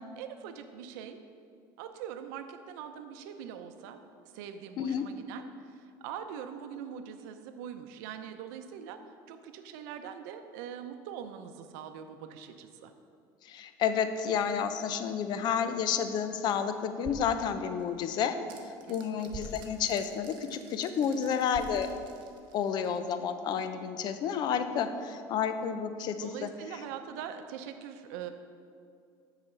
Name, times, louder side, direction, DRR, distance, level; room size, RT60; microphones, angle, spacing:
voice 1, 0.2-1.2 1.8-4.0 4.3-9.0 9.3-12.9 18.9-19.5 26.2-28.3, right 8 dB, 80° right, 8 dB, 0.6 m, -43 dB
voice 2, 13.4-18.4 18.6-21.9 22.5-26.5, left 7 dB, 50° left, 9 dB, 0.6 m, -30 dB
sound 1, 15.8-22.7, right 2 dB, 30° right, 1.1 m, -50 dB
sound 2, 17.8-23.3, right 7 dB, 55° right, 1.0 m, -56 dB
7.0 x 4.9 x 6.8 m, 2.3 s
cardioid pair, 125°, 10 cm